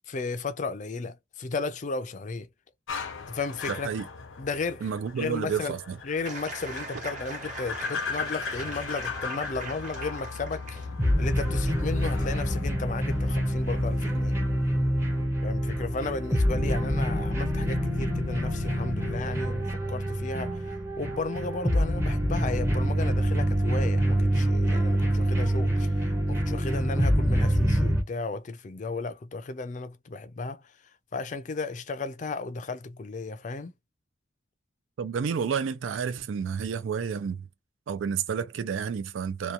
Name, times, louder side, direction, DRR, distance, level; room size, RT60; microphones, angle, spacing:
voice 1, 0.1-2.5 3.3-3.9 4.4-4.9 5.2-5.7 6.0-10.9 11.2-14.4 15.4-20.6 21.0-25.9 26.3-30.6 31.1-33.7, left 3 dB, 40° left, 0.4 m, -34 dB
sound 1, 2.9-15.3, left 5 dB, 90° left, 0.6 m, -37 dB
voice 2, 3.7-4.0 4.8-6.0 35.0-37.4 37.9-39.5, right 6 dB, 85° right, 0.4 m, -30 dB
sound 2, 6.2-10.9, right 3 dB, 40° right, 1.1 m, -41 dB
sound 3, 11.0-28.0, equal, 15° right, 0.6 m, -26 dB
2.8 x 2.2 x 2.4 m
head